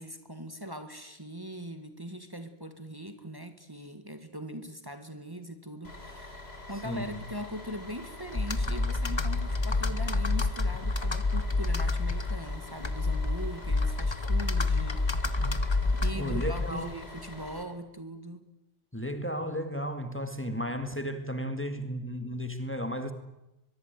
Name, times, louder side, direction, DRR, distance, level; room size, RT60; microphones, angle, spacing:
voice 1, 0.0-6.4 6.7-15.1 15.9-18.5, equal, 20° right, 8 dB, 2.0 m, -41 dB
Bus, 5.8-17.6, left 2 dB, 85° left, 4.3 m, -45 dB
voice 2, 6.8-7.2 16.1-17.0 18.9-23.1, equal, 10° left, 8 dB, 2.1 m, -34 dB
Computer keyboard, 8.3-16.9, left 3 dB, 25° left, 1.2 m, -28 dB
23.0 x 22.5 x 9.5 m, 0.95 s
omnidirectional pair, 1.0 m